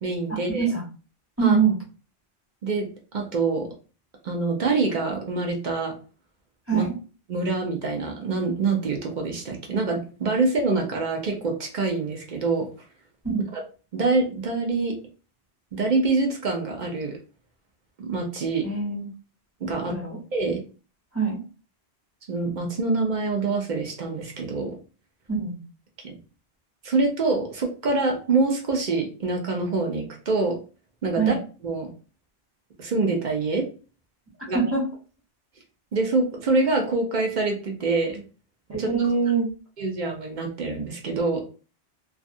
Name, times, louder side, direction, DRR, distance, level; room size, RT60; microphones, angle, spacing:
voice 1, 0.0-0.7 1.4-1.6 2.6-3.7 4.2-5.9 6.7-6.8 7.3-12.7 13.5-13.6 13.9-14.9 15.7-17.2 18.0-18.6 19.6-19.9 20.3-20.6 22.3-24.8 26.0-26.2 26.8-30.6 31.0-31.3 31.6-31.9 32.8-33.7 34.5-34.6 35.9-38.2 38.8-38.9 39.8-41.4, right 3 dB, 50° right, 2 dB, 0.7 m, -25 dB
voice 2, 1.4-1.7 6.7-6.9 13.2-13.5 18.6-19.1 19.9-20.2 21.1-21.4 25.3-25.6 31.2-31.4 34.5-34.9 38.7-39.5, right 5 dB, 15° right, -5 dB, 1.0 m, -23 dB
2.4 x 2.3 x 2.5 m, 0.36 s
omnidirectional pair, 1.1 m